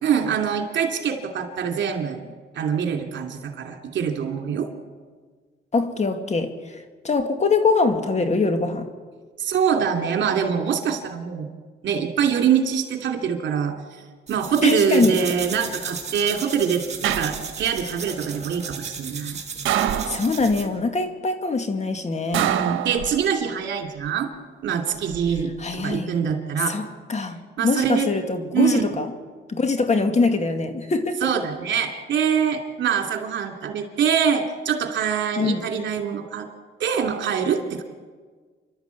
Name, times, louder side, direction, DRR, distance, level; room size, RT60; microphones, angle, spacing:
voice 1, 0.0-4.7 9.4-11.5 11.8-13.8 14.3-19.4 22.4-24.3 24.6-26.8 27.6-28.1 28.5-28.9 31.2-36.5 36.8-37.8, right 7 dB, 65° right, 4 dB, 2.7 m, -24 dB
voice 2, 5.7-6.8 7.0-8.9 14.6-15.2 20.1-22.5 25.6-26.1 26.7-26.8 27.1-29.1 29.5-31.3 35.4-35.6, left 3 dB, 35° left, 6 dB, 2.3 m, -23 dB
sound 1, 14.3-20.7, right 5 dB, 35° right, 2.7 m, -35 dB
sound 2, 17.0-17.8 19.7-20.6 22.3-23.5 24.9-25.4, right 11 dB, 80° right, 1.3 m, -26 dB
28.0 x 12.0 x 8.4 m, 1.5 s
cardioid pair, 90°, 20 cm